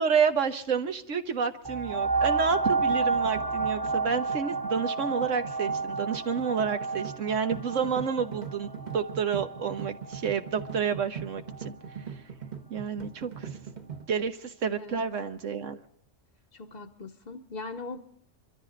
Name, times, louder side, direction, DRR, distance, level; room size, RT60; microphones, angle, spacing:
voice 1, 0.0-11.7 12.7-13.5 14.1-15.8, right 6 dB, 80° right, 8 dB, 1.5 m, -29 dB
sound 1, 1.7-10.9 11.5-11.6, right 4 dB, 20° right, 0.7 m, -31 dB
sound 2, 2.7-14.0, right 6 dB, 35° right, 1.3 m, -42 dB
voice 2, 16.5-18.0, left 3 dB, 40° left, 1 dB, 0.9 m, -40 dB
25.0 x 13.5 x 3.9 m, 0.67 s
omnidirectional pair, 1.3 m